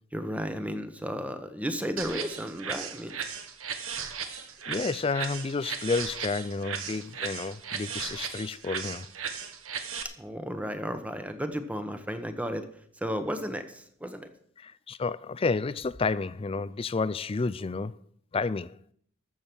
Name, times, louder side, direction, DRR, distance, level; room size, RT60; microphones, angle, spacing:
voice 1, 0.1-3.1 10.2-12.6 13.0-14.3, equal, 5° right, 1.0 m, -33 dB
sound 1, 2.0-10.0, right 6 dB, 75° right, 1.4 m, -36 dB
voice 2, 4.7-9.1 14.6-18.0 18.3-18.8, left 4 dB, 25° left, 0.4 m, -30 dB
13.5 x 7.2 x 6.2 m
head